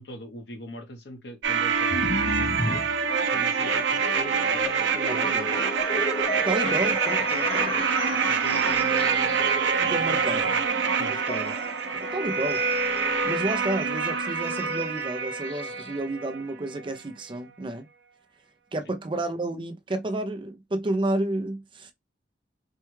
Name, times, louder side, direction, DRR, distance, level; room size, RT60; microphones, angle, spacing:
voice 1, 0.0-2.9 3.3-5.6 6.6-6.9 7.3-7.9 8.3-10.6 10.9-11.2, left 1 dB, 70° left, 1.0 m, -41 dB
sound 1, 1.4-16.5 16.7-16.8, right 6 dB, 85° right, 0.7 m, -26 dB
sound 2, 1.9-16.0, left 2 dB, 35° left, 0.7 m, -36 dB
voice 2, 5.1-5.5 6.3-7.7 9.8-10.5 11.1-11.5 11.9-12.6 13.2-17.9 18.7-21.9, right 1 dB, 30° right, 0.5 m, -31 dB
4.5 x 2.3 x 3.1 m
head